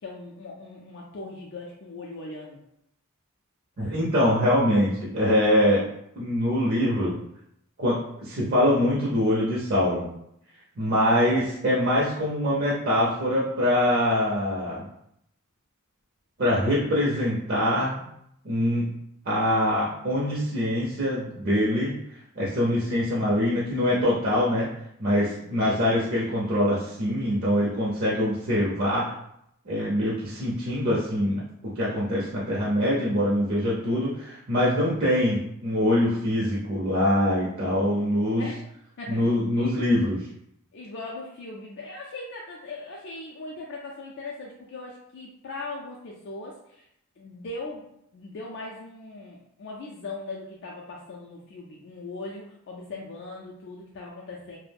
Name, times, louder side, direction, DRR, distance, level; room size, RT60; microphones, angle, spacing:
voice 1, 0.0-2.6 4.2-4.4 10.8-11.2 25.4-25.7 38.4-38.7 39.0-39.9 40.7-46.9 47.2-47.8 48.1-54.6, left 2 dB, 55° left, -2 dB, 0.4 m, -39 dB
voice 2, 3.8-5.8 6.2-7.1 7.8-10.1 10.8-14.9 16.4-18.0 18.4-18.9 19.3-21.9 22.4-24.7 25.0-29.1 29.7-38.4 39.1-40.2, left 1 dB, 45° right, -6 dB, 0.5 m, -24 dB
2.4 x 2.0 x 3.3 m, 0.75 s
head